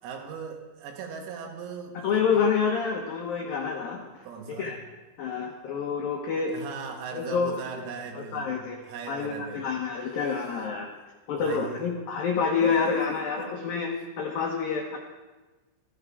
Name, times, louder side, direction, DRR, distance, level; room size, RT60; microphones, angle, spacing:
voice 1, 0.0-2.5 4.2-4.8 6.5-8.6 8.8-9.8 10.2-11.0 11.3-11.9 12.6-13.5, right 6 dB, 85° right, 2 dB, 4.4 m, -39 dB
voice 2, 2.0-4.0 4.6-4.8 5.2-6.5 7.1-7.6 8.2-8.8 9.1-10.9 11.3-13.9 14.2-15.0, left 5 dB, 85° left, 0 dB, 2.0 m, -27 dB
14.5 x 12.5 x 4.9 m, 1.2 s
omnidirectional pair, 6.0 m